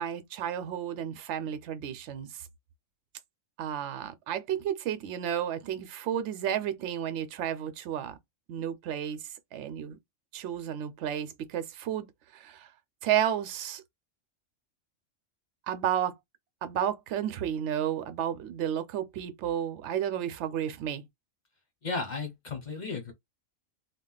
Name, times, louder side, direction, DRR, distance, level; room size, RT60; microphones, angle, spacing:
voice 1, 0.0-2.5 3.6-8.2 8.5-9.2 9.5-10.0 10.3-12.1 12.3-12.7 13.0-13.8 15.7-16.1 16.6-21.0, right 10 dB, 70° right, 0.9 m, -32 dB
voice 2, 21.8-23.1, left 4 dB, 40° left, 0.9 m, -34 dB
2.4 x 2.3 x 3.8 m
omnidirectional pair, 1.3 m